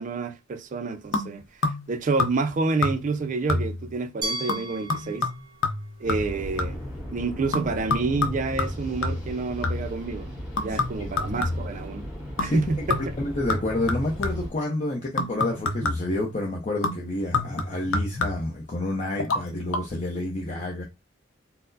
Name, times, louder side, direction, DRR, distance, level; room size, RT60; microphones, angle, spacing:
voice 1, 0.0-5.3 6.0-6.8 7.1-10.3 10.6-12.1 12.4-13.0, right 3 dB, 40° right, 0.4 m, -28 dB
sound 1, 1.1-1.9 2.2-2.6 2.8-3.2 3.5-3.9 4.5-6.9 7.5-10.0 10.6-11.8 12.4-12.6 12.9-14.6 15.2-16.2 16.8-18.6 19.2-19.4 19.7-19.8, left 3 dB, 90° left, 0.6 m, -28 dB
Glass, 4.2-7.1, right 1 dB, 20° right, 0.8 m, -37 dB
sound 2, 6.0-14.5, equal, ahead, 1.7 m, -37 dB
voice 2, 10.7-11.1 12.4-12.6 13.2-20.8, left 1 dB, 40° left, 0.6 m, -29 dB
4.2 x 2.0 x 2.6 m
head